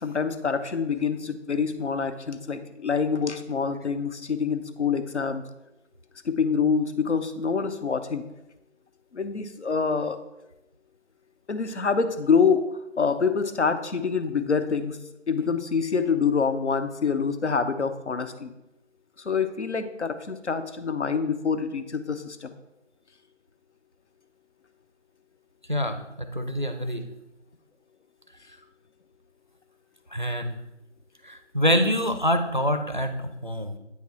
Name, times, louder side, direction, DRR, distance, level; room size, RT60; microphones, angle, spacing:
voice 1, 0.0-5.4 6.3-8.2 9.1-10.2 11.5-12.7 13.0-15.0 15.3-18.5 19.3-22.6, left 5 dB, 70° left, 9 dB, 0.7 m, -26 dB
voice 2, 25.7-27.0 30.1-30.6 31.2-33.8, equal, 40° right, 7 dB, 0.4 m, -26 dB
8.5 x 3.5 x 4.2 m, 0.92 s
figure-of-eight pair, 175°, 37 cm